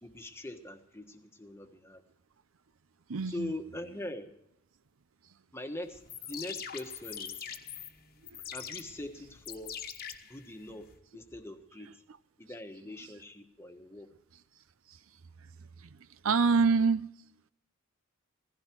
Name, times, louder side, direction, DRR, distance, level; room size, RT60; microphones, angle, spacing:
voice 1, 0.0-2.0 3.3-4.3 5.5-7.5 8.5-9.7 10.2-12.0 12.4-14.1, left 1 dB, 10° left, 1.4 m, -42 dB
voice 2, 3.1-3.5 8.3-8.4 14.9-15.0 15.8-16.0 16.2-17.1, right 5 dB, 70° right, 0.6 m, -26 dB
sound 1, 5.9-10.9, left 8 dB, 45° left, 1.3 m, -43 dB
17.0 x 15.5 x 4.6 m
head